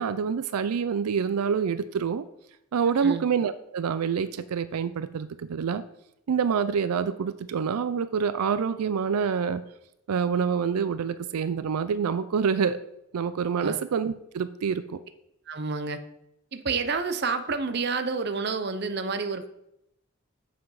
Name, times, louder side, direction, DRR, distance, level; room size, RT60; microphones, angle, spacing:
voice 1, 0.0-2.2 2.7-5.8 6.3-9.6 10.1-12.8 13.1-15.0, right 6 dB, 90° right, 13 dB, 0.4 m, -27 dB
voice 2, 15.5-16.0 16.5-19.5, right 4 dB, 45° right, 9 dB, 0.6 m, -29 dB
7.3 x 5.8 x 4.8 m, 0.81 s
head